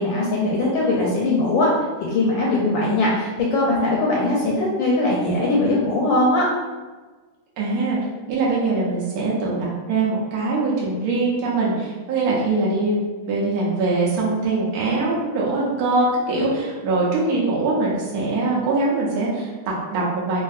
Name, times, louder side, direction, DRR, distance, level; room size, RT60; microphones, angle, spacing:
voice 1, 0.0-1.7 2.0-6.5 16.4-16.5, left 2 dB, 75° left, -4 dB, 1.2 m, -20 dB
voice 2, 7.6-8.0 8.3-20.4, right 3 dB, 80° right, -5 dB, 0.8 m, -22 dB
3.5 x 2.5 x 2.3 m, 1.3 s
omnidirectional pair, 2.3 m